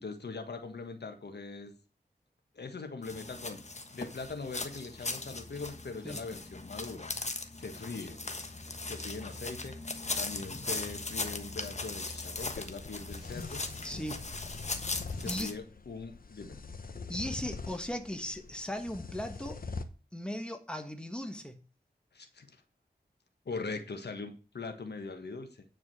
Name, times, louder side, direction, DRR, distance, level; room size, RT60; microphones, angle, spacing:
voice 1, 0.0-1.7 2.5-3.6 3.9-7.1 7.5-8.2 8.9-13.6 15.2-16.6 22.1-22.6 23.4-25.6, left 4 dB, 90° left, 6 dB, 1.4 m, -41 dB
sound 1, 3.0-15.5, left 3 dB, 45° left, 1.3 m, -39 dB
sound 2, 12.4-19.8, left 4 dB, 60° left, 1.1 m, -44 dB
voice 2, 13.8-14.2 15.2-15.6 17.1-19.6 20.1-21.6, left 1 dB, 5° left, 5 dB, 1.5 m, -37 dB
9.4 x 5.0 x 6.2 m, 0.35 s
wide cardioid pair, 80°, 17 cm